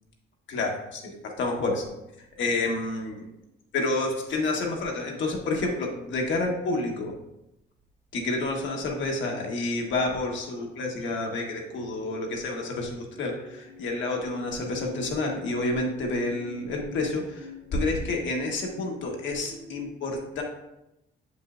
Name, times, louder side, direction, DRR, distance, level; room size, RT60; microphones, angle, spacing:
voice 1, 0.5-1.8 2.4-3.2 3.7-7.1 8.1-20.4, left 2 dB, 70° left, 0 dB, 1.4 m, -29 dB
sound 1, 11.7-19.8, left 2 dB, 55° right, 0.9 m, -46 dB
7.0 x 5.4 x 2.5 m, 0.90 s
cardioid pair, 90°, 20 cm